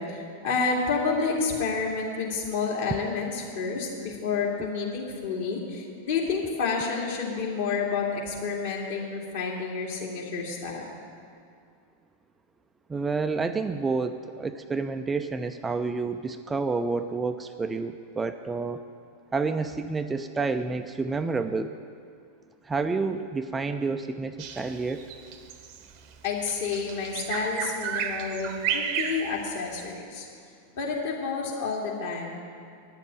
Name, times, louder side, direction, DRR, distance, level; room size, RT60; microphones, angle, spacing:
voice 1, 0.0-10.8 26.2-30.3 30.7-32.4, left 5 dB, 55° left, -3 dB, 2.5 m, -29 dB
voice 2, 12.9-18.8 19.3-21.8 22.7-25.0, right 4 dB, 15° right, 8 dB, 0.4 m, -29 dB
Bird vocalization bird call bird song, 24.4-29.9, right 8 dB, 45° right, 0.8 m, -32 dB
9.9 x 7.3 x 9.2 m, 2.3 s
figure-of-eight pair, 90°, 0 cm